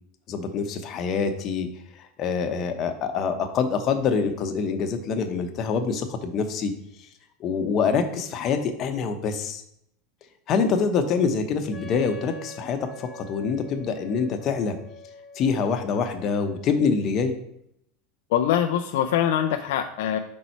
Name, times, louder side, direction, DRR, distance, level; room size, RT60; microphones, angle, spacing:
voice 1, 0.3-1.7 1.9-6.7 7.4-9.6 10.5-14.8 15.3-17.3, left 5 dB, 40° left, 6 dB, 0.8 m, -25 dB
Wind instrument woodwind instrument, 11.7-17.3, left 3 dB, 15° left, 0.9 m, -45 dB
voice 2, 18.3-20.2, left 10 dB, 75° left, 5 dB, 0.4 m, -23 dB
5.3 x 4.1 x 4.5 m, 0.74 s
supercardioid pair, 115°, 0 cm